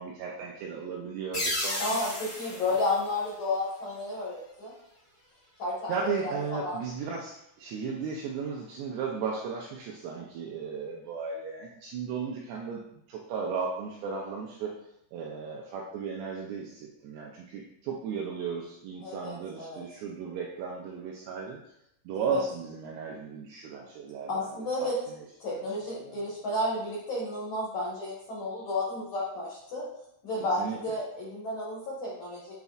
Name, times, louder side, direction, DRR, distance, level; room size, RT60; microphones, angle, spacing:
voice 1, 0.0-1.8 5.9-14.8 15.1-21.6 22.1-25.2 25.9-26.3 30.4-30.8, right 5 dB, 85° right, -1 dB, 2.4 m, -35 dB
sound 1, 1.3-3.9, left 1 dB, 25° left, 1.8 m, -34 dB
voice 2, 1.8-4.7 5.6-6.8 19.0-19.8 22.1-22.4 24.3-25.0 25.4-29.8 30.2-32.5, left 2 dB, 60° left, -6 dB, 2.1 m, -32 dB
12.0 x 4.1 x 2.4 m, 0.77 s
omnidirectional pair, 5.6 m